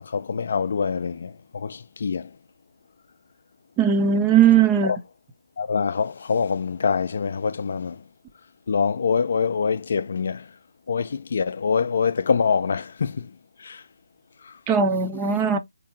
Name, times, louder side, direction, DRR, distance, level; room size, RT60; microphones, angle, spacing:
voice 1, 0.0-2.3 4.8-5.0 5.6-8.0 8.7-10.4 10.9-13.3 13.6-13.8, left 5 dB, 55° left, 0.4 m, -25 dB
voice 2, 3.8-4.9 14.7-15.6, right 7 dB, 15° right, 0.5 m, -18 dB
3.5 x 2.9 x 2.7 m
figure-of-eight pair, 155°, 0 cm